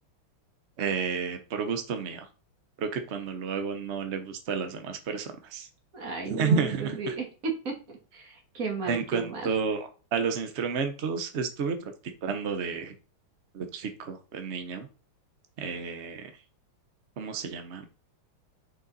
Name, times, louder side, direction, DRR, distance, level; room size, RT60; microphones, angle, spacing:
voice 1, 0.8-2.3 2.8-5.7 6.3-7.1 8.9-11.9 12.2-12.9 13.5-14.9 15.6-16.3 17.2-17.9, right 5 dB, 65° right, 7 dB, 0.6 m, -31 dB
voice 2, 5.9-7.7 8.1-9.5, right 4 dB, 40° right, 2 dB, 2.0 m, -34 dB
6.0 x 5.3 x 4.0 m, 0.35 s
omnidirectional pair, 2.3 m